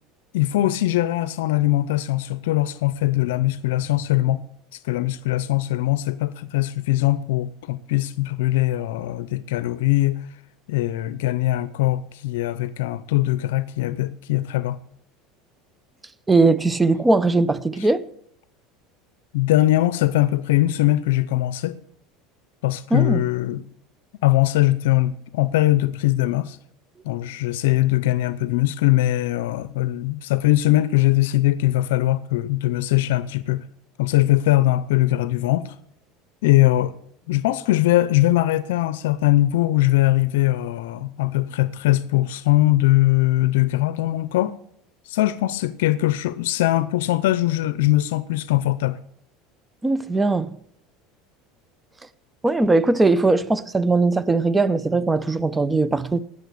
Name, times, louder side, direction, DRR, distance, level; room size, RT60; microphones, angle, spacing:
voice 1, 0.3-4.4 4.8-10.2 10.7-14.8 17.8-17.9 19.3-21.8 22.6-23.6 24.2-26.6 27.0-33.6 34.0-35.8 36.4-36.9 37.3-44.5 45.1-49.0, left 16 dB, 85° left, 0.6 m, -21 dB
voice 2, 16.3-18.0 22.9-23.2 49.8-50.5 52.4-56.2, right 3 dB, 15° right, 0.7 m, -19 dB
19.0 x 6.7 x 8.5 m
supercardioid pair, 120°, 0 cm